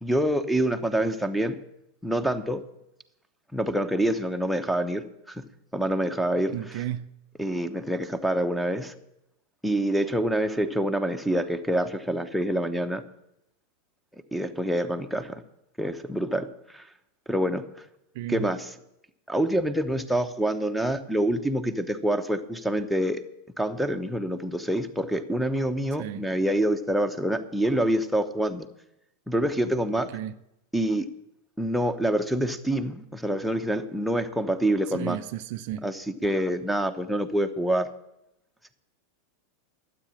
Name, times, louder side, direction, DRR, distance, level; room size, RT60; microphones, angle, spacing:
voice 1, 0.0-1.6 2.0-2.6 3.5-5.4 5.7-6.8 7.4-8.9 9.6-13.0 14.3-15.4 15.8-16.8 17.3-17.7 18.3-18.7 19.3-23.2 23.6-28.7 29.3-30.1 30.7-31.1 31.6-35.2 35.8-37.9, right 1 dB, ahead, 4 dB, 1.0 m, -26 dB
voice 2, 6.5-7.1 18.1-18.5 26.0-26.2 30.1-30.3 34.9-35.9, right 12 dB, 50° right, 11 dB, 0.5 m, -33 dB
13.0 x 8.4 x 8.5 m, 0.84 s
figure-of-eight pair, 90°, 0 cm